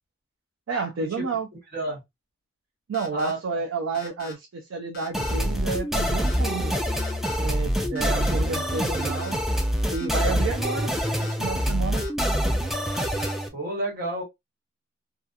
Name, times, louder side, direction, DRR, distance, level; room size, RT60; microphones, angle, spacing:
voice 1, 0.7-1.5 2.9-6.7 7.4-9.4 9.9-10.9 11.2-12.0, right 4 dB, 85° right, 0.4 m, -30 dB
sound 1, 2.9-3.3 3.9-4.3 4.9-5.3 6.0-6.4 7.0-7.4 7.9-8.3 8.9-9.3 9.9-10.3 10.9-11.3 12.0-12.3 12.9-13.3, left 5 dB, 50° left, 0.8 m, -41 dB
voice 2, 3.1-3.6 7.6-8.0 10.7-10.8 13.5-14.2, right 1 dB, 50° right, 1.4 m, -31 dB
sound 2, 5.1-13.5, equal, ahead, 0.3 m, -25 dB
2.7 x 2.3 x 2.2 m
head